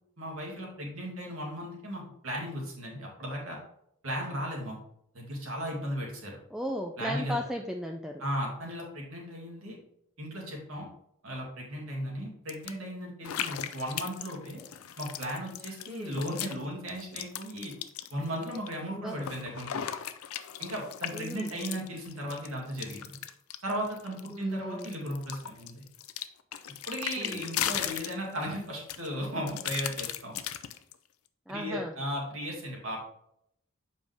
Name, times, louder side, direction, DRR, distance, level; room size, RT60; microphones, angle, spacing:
voice 1, 0.2-3.6 4.0-4.8 5.1-6.4 7.0-7.4 8.2-9.8 10.2-10.9 11.2-14.6 15.0-17.7 18.1-19.9 20.6-23.2 23.6-25.8 26.9-30.4 31.5-33.0, equal, 70° right, -1 dB, 2.3 m, -36 dB
voice 2, 6.5-8.2 15.9-16.2 18.9-19.2 21.1-21.6 24.3-24.9 27.2-27.5 31.5-31.9, equal, 5° right, 2 dB, 0.4 m, -36 dB
sound 1, 12.5-12.7 13.2-16.6 16.9-18.7 19.1-24.4 24.8-28.5 28.9-30.9, left 10 dB, 85° left, 0.5 m, -37 dB
7.3 x 5.3 x 3.4 m, 0.76 s
head